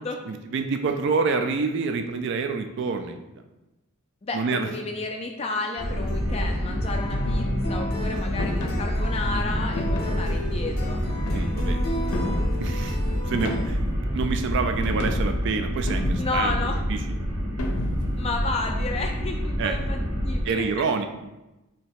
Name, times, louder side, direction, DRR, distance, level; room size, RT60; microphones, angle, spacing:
voice 1, 0.2-3.2 4.3-4.7 11.3-11.8 12.6-13.0 13.3-13.9 14.1-16.6 16.9-17.0 19.6-19.8 20.4-21.1, right 4 dB, 55° right, 7 dB, 0.3 m, -27 dB
voice 2, 4.2-11.0 16.2-16.8 18.2-20.0 20.2-20.7, left 3 dB, 25° left, 2 dB, 0.3 m, -32 dB
sound 1, 5.5-13.6, left 1 dB, 50° left, 0.7 m, -35 dB
sound 2, 5.8-20.4, equal, 80° right, 1.5 m, -27 dB
sound 3, 8.4-8.8 9.8-10.3 11.1-11.6 12.1-12.6 13.3-13.9 14.8-15.4 15.9-16.5 17.6-18.2, left 2 dB, 85° left, 0.5 m, -32 dB
3.2 x 2.8 x 4.6 m, 0.99 s
head